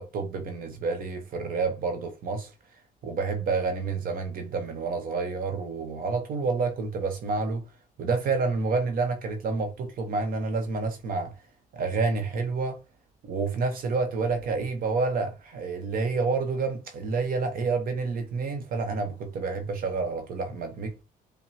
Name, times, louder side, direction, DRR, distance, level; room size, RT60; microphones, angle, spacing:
voice 1, 0.0-2.5 3.0-7.6 8.0-11.3 11.7-12.8 13.3-21.0, right 4 dB, 60° right, 0.8 m, -29 dB
5.4 x 2.2 x 2.6 m
cardioid pair, 110°, 17 cm